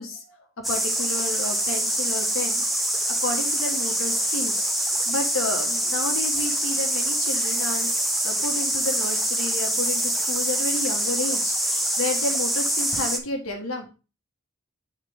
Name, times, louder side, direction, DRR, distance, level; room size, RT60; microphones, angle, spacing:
voice 1, 0.0-2.6 3.2-13.9, left 2 dB, 85° left, 2 dB, 1.4 m, -31 dB
sound 1, 0.6-13.2, right 1 dB, ahead, 0.6 m, -25 dB
8.4 x 3.7 x 3.5 m, 0.31 s
head